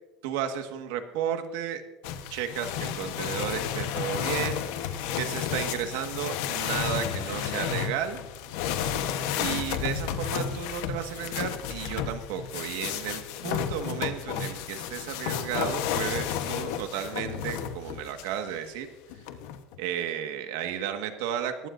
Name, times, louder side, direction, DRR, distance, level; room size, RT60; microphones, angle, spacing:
voice 1, 0.2-1.8 2.3-8.2 9.4-18.9 19.8-21.7, right 9 dB, 90° right, 6 dB, 1.6 m, -33 dB
sound 1, 2.0-18.4 19.1-19.8, left 9 dB, 75° left, 1.1 m, -32 dB
21.0 x 15.5 x 2.6 m, 1.1 s
cardioid pair, 165°, 0 cm